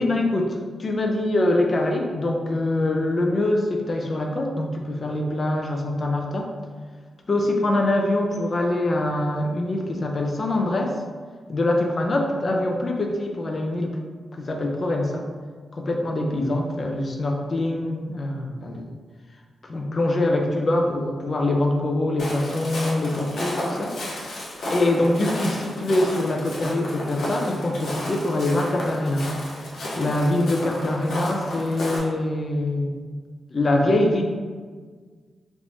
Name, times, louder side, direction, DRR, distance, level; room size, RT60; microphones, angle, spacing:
voice 1, 0.0-6.5 7.3-11.0 11.5-13.9 14.3-15.3 15.7-18.8 19.6-24.0 24.7-29.3 30.0-33.1 33.5-34.2, left 1 dB, 40° left, 2 dB, 0.5 m, -24 dB
Walk footsteps, 22.2-32.0, left 1 dB, 75° left, 0.8 m, -32 dB
3.5 x 2.6 x 3.0 m, 1.6 s
wide cardioid pair, 120°, 0 cm